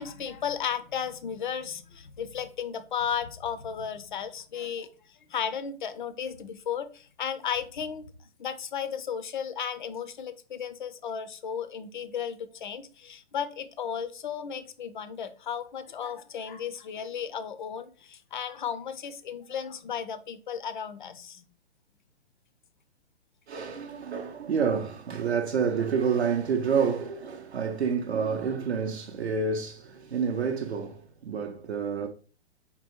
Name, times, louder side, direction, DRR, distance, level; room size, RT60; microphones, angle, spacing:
voice 1, 0.0-4.9 5.3-8.0 8.4-21.5, left 8 dB, 45° left, 0.5 m, -34 dB
voice 2, 23.5-32.1, right 6 dB, 60° right, 0.6 m, -28 dB
4.5 x 3.7 x 2.9 m
figure-of-eight pair, 120°, 35 cm